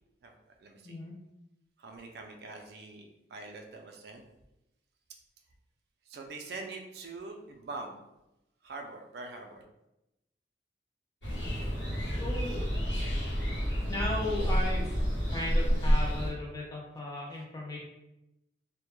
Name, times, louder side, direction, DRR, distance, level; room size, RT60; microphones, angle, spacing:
voice 1, 0.6-1.0 1.8-4.2 6.1-8.0 8.6-9.7, right 3 dB, 60° right, 3 dB, 0.3 m, -44 dB
sound 1, 11.2-16.3, equal, 80° left, 0.9 m, -29 dB
voice 2, 12.2-12.6 13.9-14.9 15.3-17.8, left 1 dB, 20° left, -3 dB, 0.5 m, -36 dB
2.1 x 2.1 x 3.0 m, 0.92 s
head